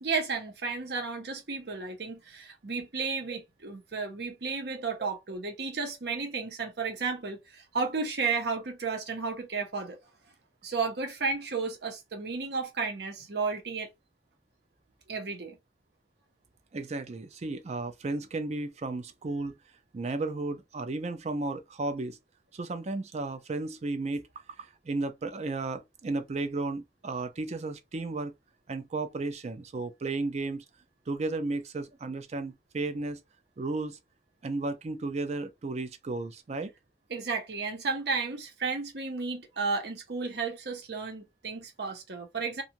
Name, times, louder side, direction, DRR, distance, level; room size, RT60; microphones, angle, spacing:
voice 1, 0.0-10.0 10.6-13.9 15.1-15.6 37.1-42.6, right 4 dB, 65° right, 0.8 m, -33 dB
voice 2, 16.7-19.5 19.9-22.2 22.5-24.2 24.6-28.3 28.7-30.6 31.1-33.2 33.6-34.0 34.4-36.7, right 3 dB, 40° right, 0.4 m, -34 dB
2.5 x 2.3 x 2.8 m
head